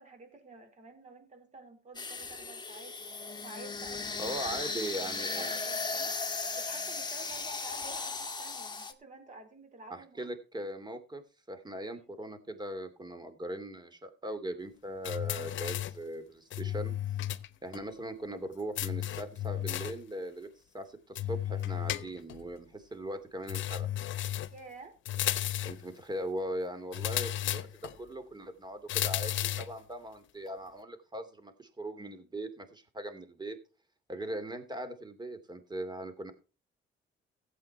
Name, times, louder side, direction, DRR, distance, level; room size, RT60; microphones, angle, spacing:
voice 1, 0.0-4.4 5.0-6.2 6.6-10.2 10.6-10.7 11.9-12.1 17.5-17.6 24.5-24.9 34.2-34.4, right 3 dB, 35° right, 6 dB, 4.6 m, -51 dB
sound 1, 1.9-8.9, left 4 dB, 20° left, 1.8 m, -36 dB
voice 2, 4.2-5.6 9.9-16.9 17.6-20.5 20.7-23.9 25.6-27.7 28.0-33.6 34.1-36.3, right 1 dB, 20° right, 10 dB, 2.7 m, -40 dB
sound 2, 15.0-16.0 16.5-17.5 17.7-17.8 18.8-20.0 21.2-22.4 23.5-24.6 25.1-25.9 26.9-28.0 28.9-29.8, left 12 dB, 75° left, 0.8 m, -34 dB
15.5 x 8.2 x 4.5 m, 0.34 s
cardioid pair, 90°, 20 cm